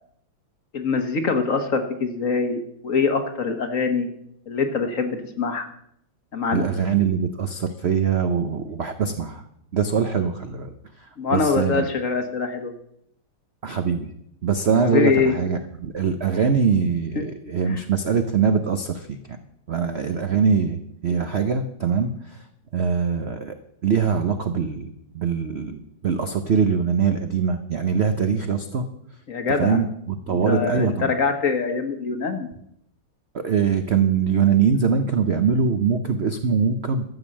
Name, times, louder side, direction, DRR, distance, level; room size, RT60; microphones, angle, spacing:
voice 1, 0.7-4.1 4.5-5.6 6.3-6.7 11.2-12.7 14.8-15.3 17.1-17.3 17.6-17.8 29.3-29.8 30.3-32.5, left 5 dB, 45° left, 6 dB, 1.3 m, -24 dB
voice 2, 6.5-9.4 9.7-10.7 11.3-11.9 13.6-14.1 14.4-19.4 19.7-22.4 22.7-23.5 23.8-28.9 29.6-31.1 33.3-37.0, right 6 dB, 65° right, 7 dB, 0.6 m, -23 dB
13.0 x 7.2 x 7.5 m, 0.75 s
omnidirectional pair, 2.2 m